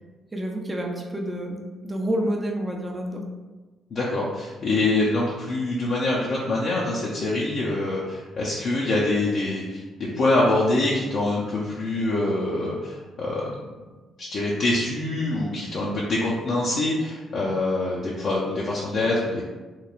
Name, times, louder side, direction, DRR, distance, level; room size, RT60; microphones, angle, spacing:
voice 1, 0.3-3.2, equal, 15° right, 0 dB, 0.5 m, -29 dB
voice 2, 3.9-13.5 14.2-19.4, left 2 dB, 55° left, -6 dB, 0.4 m, -25 dB
3.0 x 2.2 x 2.4 m, 1.2 s
cardioid pair, 90°, 0 cm